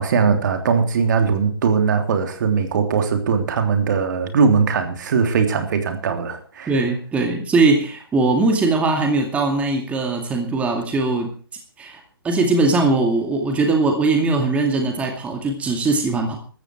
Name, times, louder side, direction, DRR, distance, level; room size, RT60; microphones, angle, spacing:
voice 1, 0.0-6.7, right 5 dB, 50° right, 6 dB, 3.2 m, -20 dB
voice 2, 6.7-11.3 11.8-16.3, right 3 dB, 10° right, 3 dB, 2.3 m, -20 dB
15.5 x 13.5 x 4.7 m, 0.40 s
hypercardioid pair, 140°, 13 cm